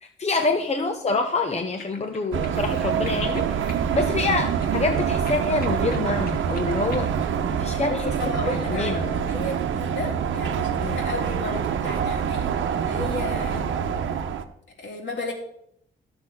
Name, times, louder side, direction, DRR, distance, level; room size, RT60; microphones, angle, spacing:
voice 1, 0.0-7.1 7.5-9.1 10.8-11.0, left 3 dB, 35° left, 5 dB, 1.1 m, -26 dB
sound 1, 1.2-7.3, left 3 dB, 50° left, 2.4 m, -44 dB
sound 2, 2.3-14.4, right 7 dB, 80° right, 0.9 m, -26 dB
voice 2, 7.9-13.7 14.8-15.3, left 2 dB, 65° left, 0 dB, 3.6 m, -34 dB
11.5 x 6.9 x 6.0 m, 0.72 s
cardioid pair, 75°, 20 cm